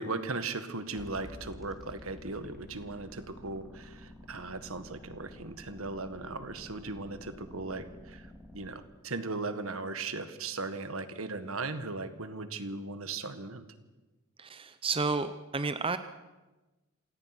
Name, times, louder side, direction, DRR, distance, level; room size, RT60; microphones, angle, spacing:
voice 1, 0.0-13.6, right 3 dB, 75° right, 10 dB, 1.8 m, -38 dB
sound 1, 0.9-8.7, left 1 dB, ahead, 3.0 m, -50 dB
voice 2, 14.4-16.0, right 4 dB, 25° right, 10 dB, 0.7 m, -31 dB
27.0 x 18.0 x 6.1 m, 1.1 s
head